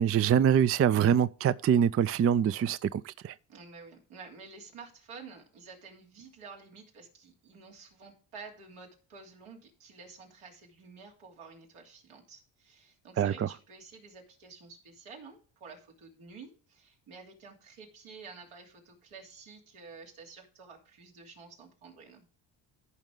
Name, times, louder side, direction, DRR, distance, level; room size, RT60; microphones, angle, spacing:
voice 1, 0.0-3.3 13.2-13.5, right 9 dB, 30° right, 0.4 m, -24 dB
voice 2, 3.5-22.2, right 4 dB, 80° right, 3.1 m, -50 dB
14.0 x 5.4 x 3.7 m
supercardioid pair, 75°, 50 cm